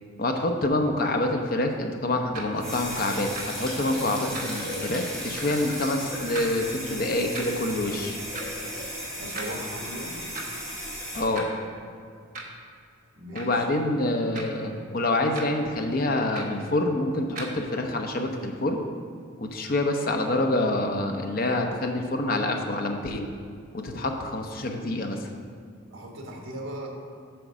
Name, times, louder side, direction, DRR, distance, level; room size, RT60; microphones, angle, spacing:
voice 1, 0.2-8.2 11.1-11.5 13.3-18.8 19.4-23.3 23.7-25.3, left 2 dB, 45° left, 3 dB, 0.7 m, -27 dB
sound 1, 2.3-2.5 3.3-3.5 4.3-4.6 5.3-5.5 6.3-6.5 7.3-7.5 8.3-8.5 9.3-9.5 10.3-10.6 11.3-11.5 12.3-12.6 13.3-13.6 14.3-14.6 15.3-15.5 16.3-16.6 17.3-17.5, right 3 dB, 40° right, 1.0 m, -37 dB
sound 2, 2.6-11.2, equal, 5° left, 1.6 m, -35 dB
voice 2, 9.2-10.2 13.1-13.7 25.9-26.9, right 1 dB, 70° right, 1 dB, 1.3 m, -37 dB
7.9 x 4.5 x 6.1 m, 2.2 s
head